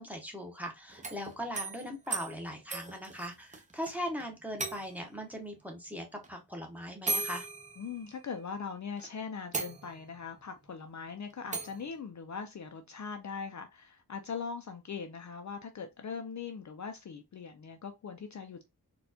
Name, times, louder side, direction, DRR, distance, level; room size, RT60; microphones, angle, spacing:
voice 1, 0.0-7.5, equal, 5° right, 0.8 m, -40 dB
sound 1, 0.9-4.2 4.6-5.2 6.2-6.3 7.1-8.5 9.0-9.1 9.5-10.2 11.5-11.8, right 3 dB, 20° right, 0.4 m, -37 dB
voice 2, 7.8-18.7, left 5 dB, 45° left, 0.5 m, -41 dB
4.2 x 2.3 x 2.6 m
wide cardioid pair, 170°, 39 cm